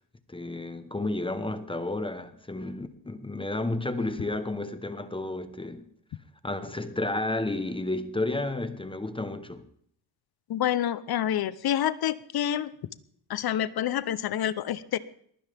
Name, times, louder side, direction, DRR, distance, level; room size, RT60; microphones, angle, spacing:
voice 1, 0.3-5.9 6.4-9.6, left 2 dB, 10° left, 1.1 m, -31 dB
voice 2, 10.5-12.7 13.3-15.0, left 11 dB, 60° left, 0.9 m, -28 dB
22.0 x 16.0 x 3.6 m
cardioid pair, 115°, 43 cm